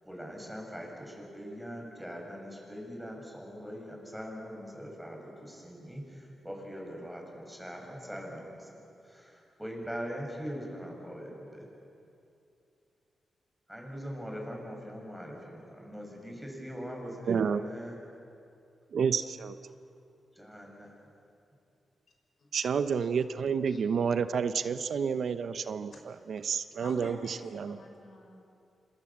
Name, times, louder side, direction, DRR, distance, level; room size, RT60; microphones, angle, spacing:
voice 1, 0.0-11.7 13.7-18.0 19.7-19.8 20.3-20.9, equal, ahead, 0 dB, 7.0 m, -42 dB
voice 2, 17.3-17.6 18.9-19.6 22.5-27.8, right 6 dB, 70° right, 11 dB, 0.8 m, -30 dB
voice 3, 26.1-26.4 26.8-28.4, left 1 dB, 60° left, 2 dB, 5.8 m, -49 dB
27.0 x 26.5 x 7.4 m, 2.6 s
cardioid pair, 95°, 0 cm